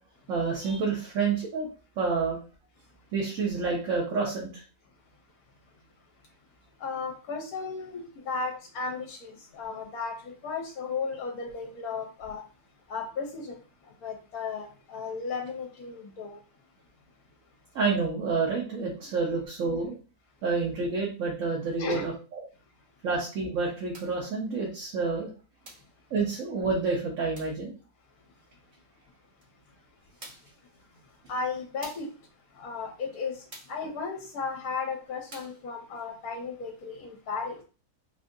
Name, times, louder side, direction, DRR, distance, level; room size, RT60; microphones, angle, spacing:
voice 1, 0.3-1.7 2.0-2.4 3.1-4.6 17.7-20.0 20.4-22.4 23.0-25.3 26.1-27.7, right 4 dB, 60° right, 1.1 m, -29 dB
voice 2, 6.8-12.4 12.9-16.4 21.8-22.0 30.2-37.6, left 4 dB, 70° left, 1.1 m, -35 dB
sound 1, 23.9-24.2 25.6-26.0 27.3-27.6 29.4-29.5 30.2-30.6 31.8-32.2 33.5-33.8 35.3-35.6, right 2 dB, 35° right, 0.9 m, -48 dB
3.6 x 2.7 x 2.6 m
omnidirectional pair, 1.7 m